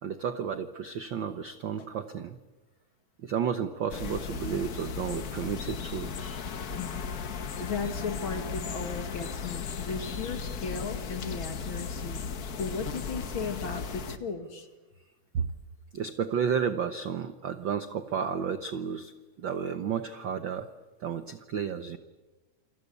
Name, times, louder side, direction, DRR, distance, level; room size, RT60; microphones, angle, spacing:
voice 1, 0.0-2.4 3.2-6.4 15.3-15.5 15.9-19.1 19.4-20.7 21.0-22.0, right 7 dB, 70° right, 10 dB, 1.1 m, -32 dB
sound 1, 3.9-14.2, left 6 dB, 60° left, 0.9 m, -36 dB
voice 2, 6.7-14.7, left 5 dB, 45° left, 7 dB, 2.6 m, -36 dB
28.5 x 25.0 x 8.4 m, 1.2 s
omnidirectional pair, 3.5 m